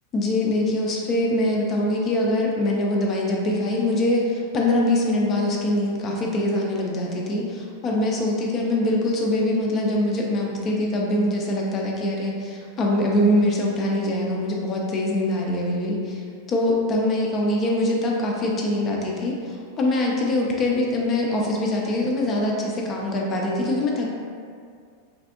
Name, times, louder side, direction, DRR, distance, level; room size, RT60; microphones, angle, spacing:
voice 1, 0.1-16.2 16.5-24.1, left 1 dB, 30° left, -2 dB, 0.4 m, -23 dB
3.3 x 2.4 x 2.4 m, 2.2 s
figure-of-eight pair, 90°, 0 cm